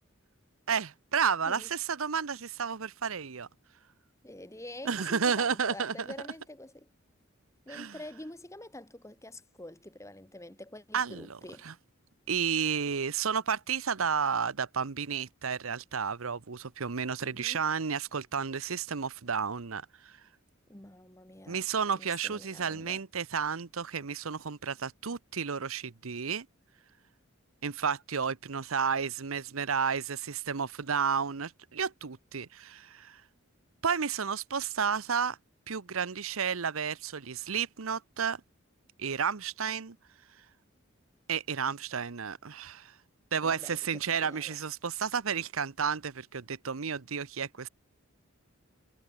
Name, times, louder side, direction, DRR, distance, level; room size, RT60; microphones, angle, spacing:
voice 1, 0.7-3.5 4.8-6.1 7.7-7.9 10.9-11.3 11.6-11.7 12.3-20.2 21.5-26.5 27.6-33.2 33.8-35.4 35.7-38.4 39.0-40.0 41.3-42.9 43.3-47.7, right 6 dB, 90° right, 0.9 m, -32 dB
voice 2, 4.2-6.9 7.7-11.7 17.2-17.6 20.7-21.7 22.0-23.0 43.4-43.8 44.1-44.6, left 1 dB, 15° left, 1.9 m, -47 dB
head